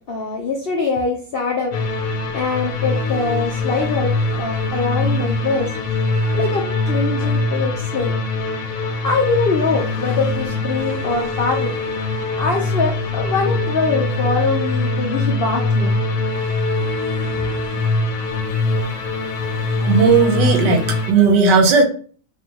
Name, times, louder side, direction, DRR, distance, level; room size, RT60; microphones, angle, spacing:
voice 1, 0.1-1.8 2.3-5.7 6.3-8.2 9.0-11.7 12.4-16.0, left 4 dB, 85° left, 1 dB, 0.5 m, -23 dB
sound 1, 1.7-21.1, left 2 dB, 65° left, 1.0 m, -22 dB
voice 2, 19.8-21.8, right 4 dB, 80° right, 5 dB, 1.4 m, -15 dB
4.8 x 2.6 x 2.8 m, 0.42 s
omnidirectional pair, 1.8 m